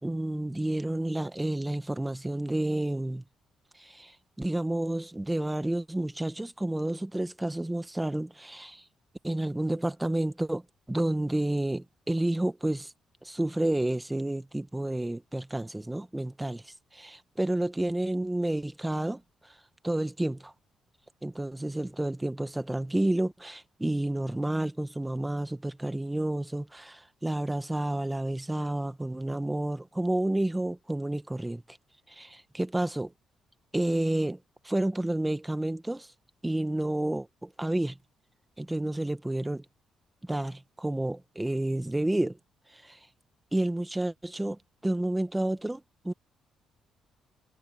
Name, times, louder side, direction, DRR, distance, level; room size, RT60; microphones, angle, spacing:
voice 1, 0.0-3.2 3.8-8.8 9.2-10.6 10.9-12.9 13.2-16.6 16.9-19.5 19.8-20.5 21.2-31.6 32.1-33.1 33.7-34.4 34.6-36.1 36.4-38.0 38.6-39.6 40.2-42.4 42.7-43.0 43.5-46.1, right 1 dB, 10° right, 1.4 m, -30 dB
cardioid pair, 90°, 0 cm